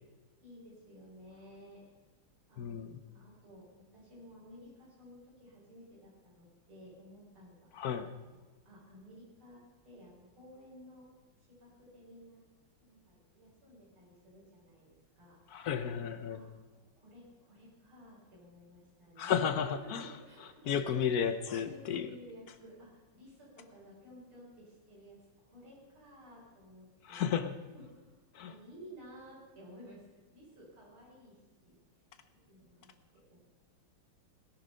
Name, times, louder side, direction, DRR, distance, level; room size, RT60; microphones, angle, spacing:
voice 1, 0.4-1.8 2.5-2.7 3.0-7.9 8.3-11.1 11.4-12.4 12.8-15.4 16.1-20.7 21.6-27.2 27.7-30.0 30.3-31.8 32.3-33.4, equal, 80° right, -7 dB, 5.5 m, -55 dB
voice 2, 2.6-3.0 7.7-8.1 15.5-16.4 19.2-20.1 20.7-22.1 27.0-27.5 28.3-28.5, left 8 dB, 65° left, 10 dB, 0.9 m, -33 dB
18.0 x 10.5 x 5.5 m, 1.3 s
omnidirectional pair, 2.3 m